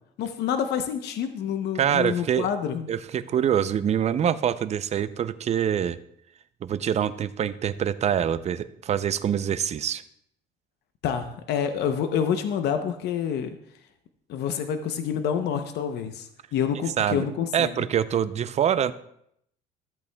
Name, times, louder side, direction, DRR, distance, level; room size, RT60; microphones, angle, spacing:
voice 1, 0.2-2.9 11.0-13.6 14.3-17.9, left 8 dB, 70° left, 8 dB, 0.7 m, -28 dB
voice 2, 1.8-2.5 2.9-6.0 6.6-10.0 17.0-17.2 17.5-18.9, right 9 dB, 40° right, 14 dB, 0.5 m, -25 dB
14.0 x 8.2 x 2.2 m, 0.72 s
cardioid pair, 120°, 18 cm